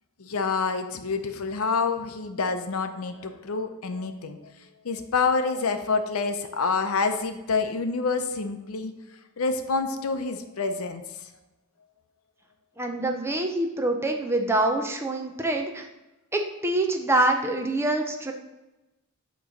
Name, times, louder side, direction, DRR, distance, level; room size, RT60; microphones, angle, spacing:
voice 1, 0.2-4.4 4.8-8.9 9.4-11.2, left 4 dB, 75° left, 7 dB, 0.6 m, -27 dB
voice 2, 12.8-15.9 16.3-18.3, right 2 dB, 10° right, 3 dB, 0.5 m, -25 dB
8.6 x 3.1 x 5.1 m, 1.0 s
head